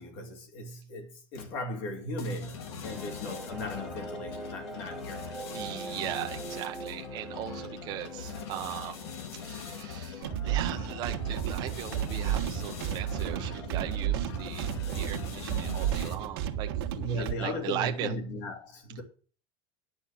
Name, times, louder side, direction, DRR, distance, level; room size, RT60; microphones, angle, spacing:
voice 1, 0.0-5.4 16.9-19.0, left 1 dB, 50° left, 2.5 m, -37 dB
sound 1, 2.2-16.4, left 6 dB, 85° left, 2.4 m, -42 dB
sound 2, 2.8-10.3 10.6-10.7 10.9-11.0, right 4 dB, ahead, 0.8 m, -44 dB
voice 2, 5.5-9.1 9.4-16.7 17.1-18.1, right 13 dB, 30° right, 0.9 m, -38 dB
sound 3, 10.2-17.3, right 11 dB, 65° right, 1.5 m, -32 dB
10.5 x 6.4 x 7.4 m
supercardioid pair, 175°, 13 cm